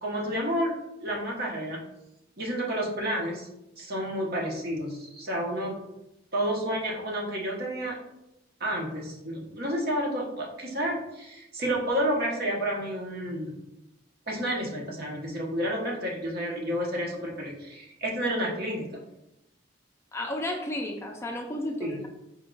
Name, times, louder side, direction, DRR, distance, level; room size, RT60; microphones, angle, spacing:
voice 1, 0.0-0.7 1.0-1.8 2.4-3.5 3.8-5.7 6.3-7.9 8.6-13.6 14.3-19.0 21.8-22.0, equal, 55° right, -2 dB, 0.9 m, -30 dB
voice 2, 20.1-22.1, left 1 dB, 15° left, 1 dB, 0.3 m, -33 dB
4.4 x 2.3 x 3.8 m, 0.89 s
head